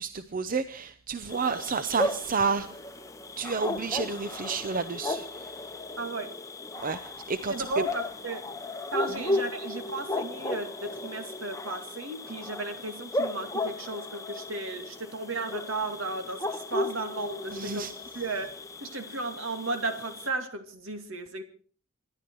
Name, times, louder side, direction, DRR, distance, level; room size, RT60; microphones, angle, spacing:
voice 1, 0.0-2.8 3.4-5.5 6.8-7.5 9.1-9.2 17.5-17.9, right 5 dB, 45° right, 12 dB, 0.7 m, -30 dB
sound 1, 1.3-20.3, left 2 dB, 15° left, 0.9 m, -35 dB
voice 2, 6.0-6.3 7.5-8.5 8.9-17.9 18.1-21.4, right 2 dB, 70° right, 8 dB, 2.4 m, -35 dB
27.0 x 11.5 x 4.7 m, 0.42 s
head